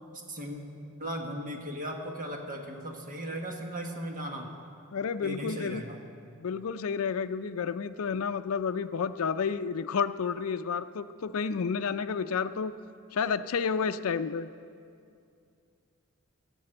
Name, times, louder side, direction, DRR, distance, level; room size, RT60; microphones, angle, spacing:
voice 1, 0.3-0.6 1.0-4.5 5.2-6.0, equal, 40° right, 2 dB, 1.5 m, -37 dB
voice 2, 4.9-5.8 6.4-12.7 13.1-14.5, left 6 dB, 75° left, 12 dB, 0.4 m, -30 dB
15.5 x 7.6 x 7.7 m, 2.4 s
head